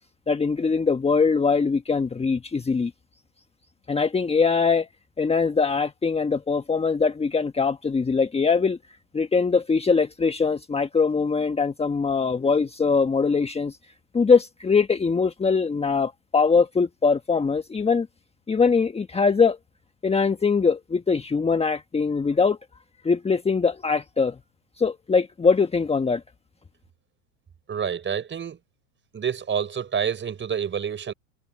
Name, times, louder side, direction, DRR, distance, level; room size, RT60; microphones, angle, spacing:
voice 1, 0.3-2.9 3.9-4.9 5.2-8.8 9.1-13.8 14.1-18.1 18.5-19.6 20.0-22.6 23.0-24.3 24.8-26.2, left 5 dB, 15° left, 1.4 m, -22 dB
voice 2, 27.7-28.6 29.1-31.1, right 7 dB, 25° right, 5.1 m, -28 dB
hypercardioid pair, 90°, 44 cm